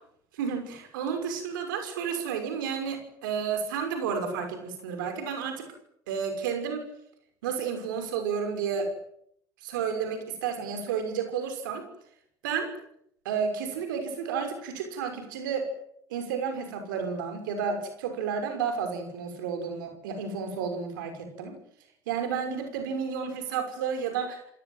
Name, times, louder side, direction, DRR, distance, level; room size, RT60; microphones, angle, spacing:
voice 1, 0.3-5.7 6.1-6.8 7.4-8.9 9.6-11.8 12.4-12.7 13.2-15.7 16.1-21.6 22.1-24.4, right 6 dB, 90° right, 6 dB, 6.0 m, -31 dB
28.5 x 18.0 x 9.2 m, 0.70 s
supercardioid pair, 75°, 10 cm